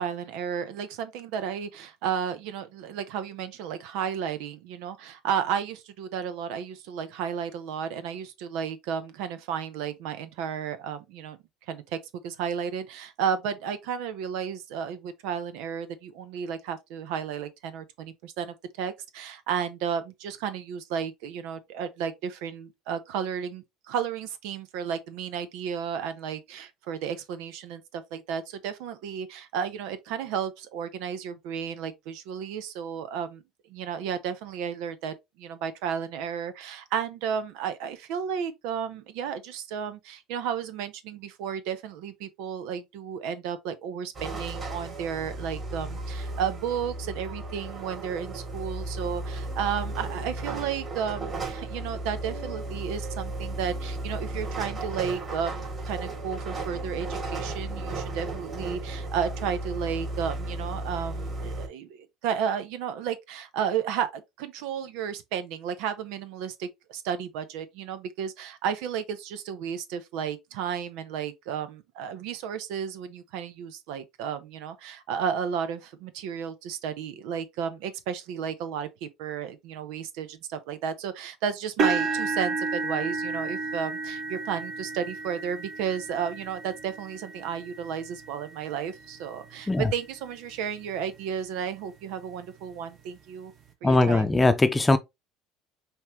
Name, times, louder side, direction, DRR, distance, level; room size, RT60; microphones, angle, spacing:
voice 1, 0.0-11.4 11.7-12.0 12.2-33.4 33.7-93.5 93.8-94.3, right 8 dB, 70° right, 0.8 m, -33 dB
sound 1, 44.1-61.7, right 2 dB, 30° right, 3.0 m, -35 dB
sound 2, 81.8-89.8 90.5-90.7 91.1-91.2 92.6-92.7, right 4 dB, 50° right, 1.2 m, -32 dB
voice 2, 93.8-95.0, left 2 dB, 15° left, 0.8 m, -20 dB
5.6 x 2.9 x 3.2 m
hypercardioid pair, 75°, 0 cm